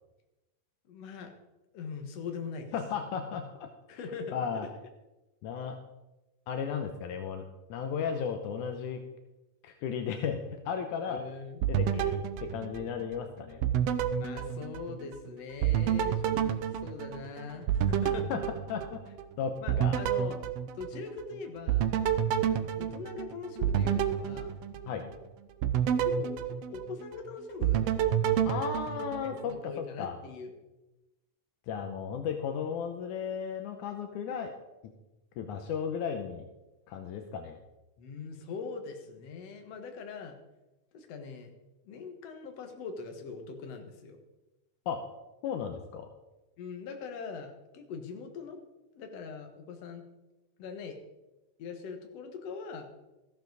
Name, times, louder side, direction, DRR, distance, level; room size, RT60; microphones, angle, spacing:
voice 1, 0.9-1.3 1.7-2.7 3.9-4.4 11.1-11.6 14.1-18.3 19.6-20.4 20.7-21.8 22.8-24.5 26.0-26.3 26.7-27.8 28.9-29.0 29.4-30.5 38.0-40.3 40.9-41.5 41.9-44.2 46.6-48.6 49.0-50.0 50.6-51.0 51.6-52.9, left 5 dB, 55° left, 4 dB, 2.4 m, -41 dB
voice 2, 2.7-3.7 4.3-4.7 5.4-5.8 6.5-7.4 7.7-9.0 9.6-11.3 11.7-13.6 18.3-18.4 18.7-19.0 19.4-20.0 24.9-25.1 28.5-29.7 30.0-30.1 31.7-34.5 35.4-36.4 36.9-37.6 44.9-45.0 45.4-46.1, left 7 dB, 80° left, 6 dB, 2.2 m, -35 dB
sound 1, 11.6-13.2 13.6-15.2 15.6-19.3 19.7-21.3 21.7-25.2 25.6-27.2 27.6-29.6, right 9 dB, 75° right, 1.4 m, -29 dB
14.5 x 12.0 x 4.0 m, 1.0 s
omnidirectional pair, 3.6 m